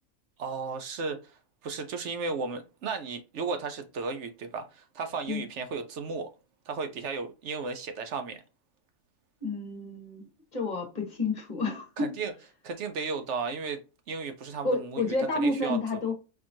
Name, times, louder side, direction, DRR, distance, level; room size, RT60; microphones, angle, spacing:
voice 1, 0.4-1.2 1.6-6.3 6.7-8.4 12.0-12.3 12.6-13.8 14.1-16.1, right 4 dB, 65° right, 0.8 m, -34 dB
voice 2, 9.4-10.3 10.5-12.1 14.6-16.1, left 3 dB, 35° left, 1.3 m, -30 dB
4.3 x 2.9 x 2.6 m
omnidirectional pair, 1.5 m